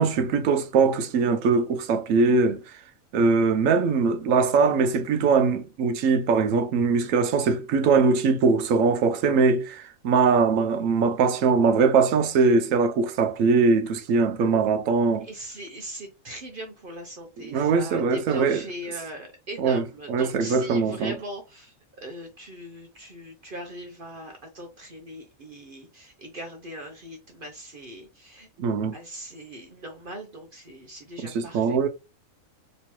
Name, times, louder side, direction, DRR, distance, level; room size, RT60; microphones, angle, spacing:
voice 1, 0.0-2.6 3.1-15.3 17.4-18.6 19.6-19.8 20.1-21.1 28.6-28.9 31.2-31.9, right 5 dB, 75° right, 1.0 m, -21 dB
voice 2, 15.2-28.5 28.9-31.9, equal, 50° right, 0.7 m, -40 dB
3.2 x 2.9 x 2.9 m
omnidirectional pair, 1.4 m